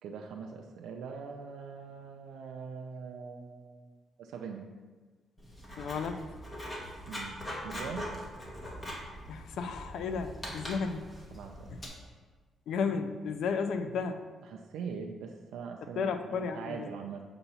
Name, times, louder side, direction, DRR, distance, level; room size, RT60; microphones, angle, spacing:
voice 1, 0.0-3.9 4.2-4.7 6.8-7.3 7.6-8.1 11.3-11.8 14.5-17.2, right 6 dB, 90° right, 2 dB, 0.4 m, -42 dB
Writing, 5.4-11.9, equal, 20° left, 1.2 m, -42 dB
voice 2, 5.8-6.3 9.3-11.1 12.7-14.2 16.0-16.9, left 5 dB, 80° left, 9 dB, 0.4 m, -33 dB
6.7 x 2.9 x 5.4 m, 1.4 s
cardioid pair, 95°, 0 cm